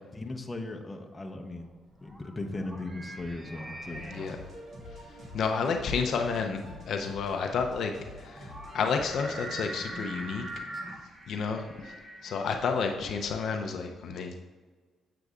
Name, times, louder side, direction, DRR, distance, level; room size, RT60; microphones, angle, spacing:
voice 1, 0.1-1.7 2.0-4.1, left 2 dB, 20° left, 3 dB, 0.8 m, -37 dB
sound 1, 1.5-13.0, right 1 dB, 20° right, 1.3 m, -43 dB
sound 2, 3.9-9.0, left 1 dB, 60° right, 1.8 m, -47 dB
voice 2, 4.9-10.4 11.3-12.0 12.2-14.3, left 5 dB, 65° left, 4 dB, 0.6 m, -31 dB
7.9 x 6.7 x 2.4 m, 1.4 s
cardioid pair, 90°, 0 cm